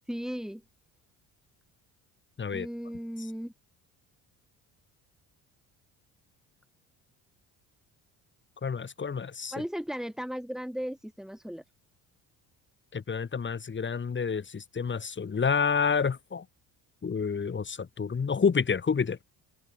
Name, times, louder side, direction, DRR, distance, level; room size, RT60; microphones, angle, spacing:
voice 1, 0.1-0.6 2.5-3.5 9.5-11.6, equal, ahead, 4.7 m, -36 dB
voice 2, 8.6-9.5 12.9-16.4 17.0-19.2, left 6 dB, 30° left, 2.8 m, -29 dB
cardioid pair, 95°, 38 cm